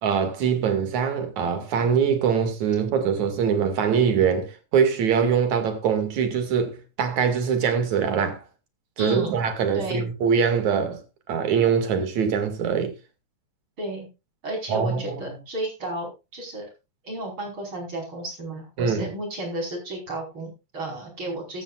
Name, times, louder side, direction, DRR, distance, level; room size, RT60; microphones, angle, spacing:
voice 1, 0.0-8.4 9.0-11.0 11.3-12.9 14.7-15.4 18.8-19.1, right 7 dB, 65° right, 3.5 m, -23 dB
voice 2, 9.0-9.4 9.7-10.0 13.8-14.1 14.4-16.7 17.0-21.6, right 1 dB, 40° right, 5.7 m, -32 dB
15.0 x 13.0 x 2.5 m
omnidirectional pair, 3.6 m